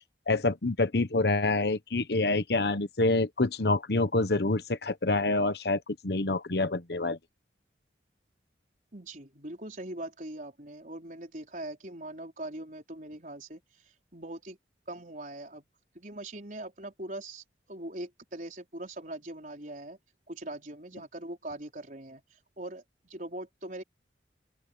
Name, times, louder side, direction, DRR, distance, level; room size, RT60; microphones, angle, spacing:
voice 1, 0.3-7.2, left 2 dB, 65° left, 1.1 m, -27 dB
voice 2, 8.9-13.6 14.1-14.6 14.9-15.7 15.9-20.0 20.3-22.2 22.6-23.8, right 1 dB, 45° right, 4.7 m, -41 dB
open air
head